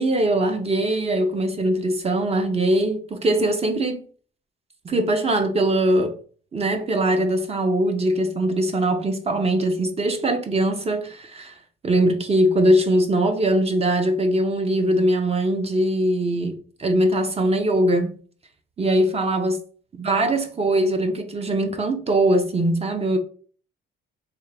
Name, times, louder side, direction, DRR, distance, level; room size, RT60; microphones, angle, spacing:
voice 1, 0.0-4.0 4.8-6.1 6.5-11.5 11.8-18.2 18.8-19.6 20.0-23.2, right 1 dB, 30° right, 0.8 m, -21 dB
3.6 x 2.8 x 3.4 m
cardioid pair, 90°, 20 cm